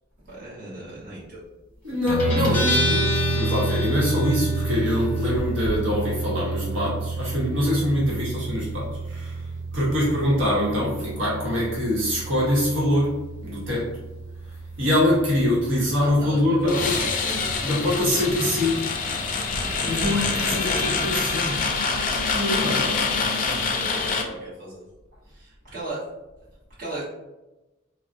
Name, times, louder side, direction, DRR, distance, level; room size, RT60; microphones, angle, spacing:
voice 1, 0.2-1.4 16.0-16.8 22.5-24.8 25.3-26.0 26.8-27.1, right 2 dB, 45° right, -8 dB, 1.0 m, -36 dB
voice 2, 1.8-9.4 9.7-13.9 14.8-16.9 17.6-18.9 19.9-21.6 22.3-22.8, left 1 dB, 70° right, -6 dB, 1.0 m, -24 dB
Guitar, 2.1-19.3, right 2 dB, 5° left, 0.9 m, -29 dB
sound 1, 16.7-24.2, left 4 dB, 40° left, 0.4 m, -25 dB
3.7 x 2.1 x 2.6 m, 1.0 s
head